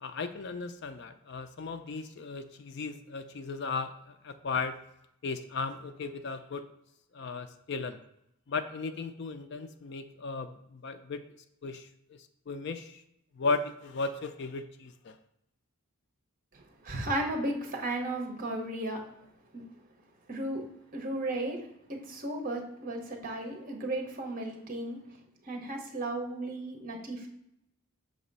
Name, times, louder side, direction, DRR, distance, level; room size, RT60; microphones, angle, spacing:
voice 1, 0.0-4.8 5.2-6.7 7.1-8.0 8.5-11.2 11.6-12.2 12.5-13.0 13.4-15.2, left 4 dB, 50° left, 10 dB, 0.4 m, -36 dB
voice 2, 16.5-19.0 19.5-19.6 20.3-20.6 20.9-21.6 21.9-25.0 25.4-27.3, right 1 dB, 40° right, 3 dB, 0.9 m, -35 dB
6.4 x 2.9 x 5.3 m, 0.81 s
head